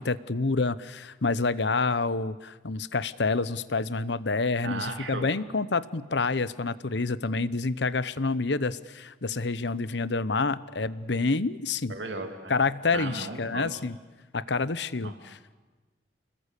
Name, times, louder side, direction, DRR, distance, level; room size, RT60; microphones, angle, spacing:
voice 1, 0.0-11.9 12.5-14.0 14.3-15.4, left 3 dB, 75° left, 17 dB, 0.9 m, -28 dB
voice 2, 4.6-5.3 11.9-12.5 12.9-13.8 15.0-15.1, right 3 dB, 85° right, 4 dB, 2.8 m, -36 dB
29.5 x 21.0 x 8.4 m, 1.3 s
head